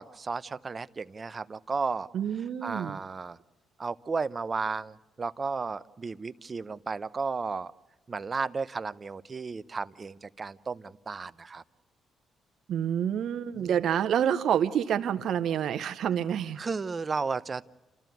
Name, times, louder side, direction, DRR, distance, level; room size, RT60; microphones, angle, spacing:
voice 1, 0.0-2.1 2.6-3.4 3.8-7.7 8.1-11.6 13.5-13.7 16.6-17.6, right 4 dB, 35° right, 14 dB, 0.7 m, -33 dB
voice 2, 2.1-3.0 12.7-16.6, right 9 dB, 70° right, 9 dB, 0.8 m, -28 dB
29.0 x 14.0 x 9.1 m, 1.2 s
cardioid pair, 90°, 0 cm